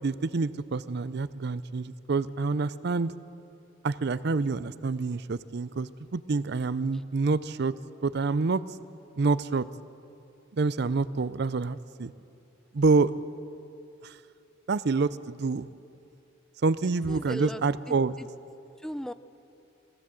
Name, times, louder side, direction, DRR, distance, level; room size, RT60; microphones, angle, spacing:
voice 1, 0.0-3.1 3.8-7.7 8.0-8.6 9.2-9.7 10.5-12.1 12.7-13.1 14.0-14.2 14.7-15.7 16.6-18.1, right 4 dB, 60° right, 16 dB, 0.5 m, -27 dB
voice 2, 16.8-17.6 17.9-18.3 18.8-19.1, equal, 5° left, 12 dB, 0.4 m, -37 dB
22.0 x 15.5 x 7.7 m, 2.7 s
head